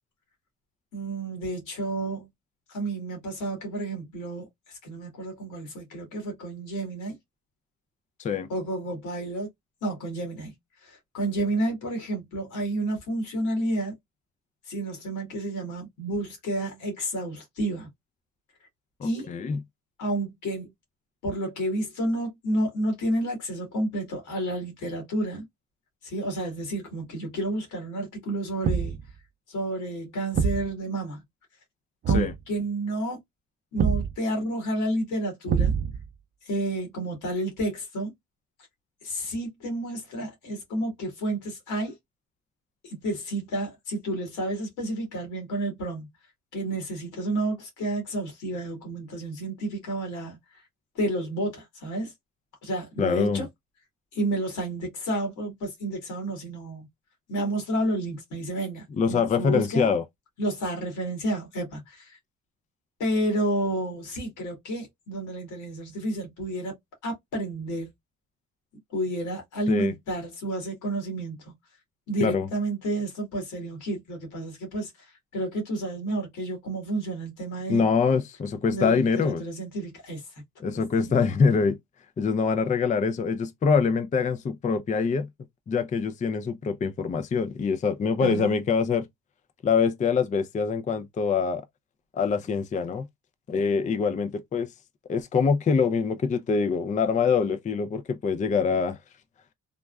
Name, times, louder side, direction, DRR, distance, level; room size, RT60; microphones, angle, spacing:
voice 1, 0.9-2.3 2.7-7.2 8.5-9.5 9.8-10.5 10.8-13.9 14.7-17.9 19.0-19.3 20.0-20.7 21.2-25.5 26.0-29.0 29.5-31.2 32.1-33.2 33.7-35.7 36.4-38.1 39.0-41.9 42.8-46.1 46.5-50.6 50.9-52.1 52.6-53.5 54.1-56.9 57.3-59.9 60.4-62.2 63.0-66.7 67.0-67.9 68.9-71.5 72.1-77.9 78.7-80.2 80.7-81.4 88.2-88.6, right 1 dB, 85° left, 1.6 m, -30 dB
voice 2, 19.0-19.6 32.1-32.3 53.0-53.5 59.0-60.0 69.7-69.9 72.2-72.5 77.7-79.4 80.6-81.8 82.2-85.3 85.7-89.1 89.6-91.6 92.1-93.1 93.5-94.7 95.1-99.0, left 5 dB, 25° left, 0.4 m, -24 dB
Thump thud, 28.6-29.1 30.3-30.7 32.0-32.4 33.8-34.1 35.5-36.1, right 6 dB, 40° right, 0.4 m, -24 dB
3.5 x 2.1 x 2.2 m
cardioid pair, 90°, 30 cm